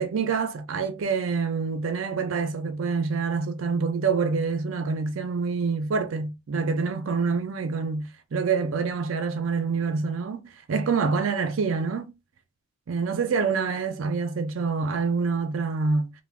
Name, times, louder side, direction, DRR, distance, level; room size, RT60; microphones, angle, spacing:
voice 1, 0.0-12.1 12.9-16.1, right 5 dB, 65° right, 0.4 m, -26 dB
2.4 x 2.0 x 3.4 m
head